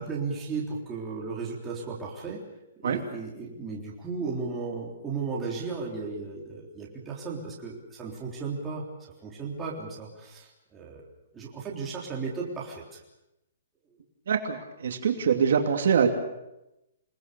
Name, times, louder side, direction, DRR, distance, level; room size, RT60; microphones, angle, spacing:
voice 1, 0.0-2.4 2.8-8.9 9.2-11.0 11.3-13.0, right 4 dB, 10° right, -4 dB, 3.8 m, -35 dB
voice 2, 14.3-14.6 14.8-16.1, right 7 dB, 55° right, 4 dB, 2.7 m, -23 dB
28.0 x 19.5 x 7.0 m, 0.91 s
hypercardioid pair, 175°, 0 cm